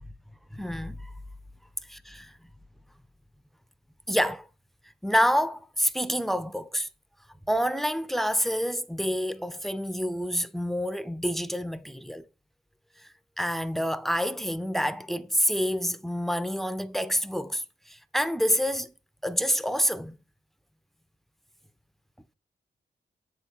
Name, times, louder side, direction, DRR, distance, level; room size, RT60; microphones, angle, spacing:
voice 1, 0.5-1.1 1.9-2.3 4.1-4.5 5.0-6.9 7.5-12.3 13.0-18.9 19.2-20.2, equal, ahead, 0.4 m, -28 dB
7.7 x 3.5 x 4.2 m
cardioid pair, 70°, 18 cm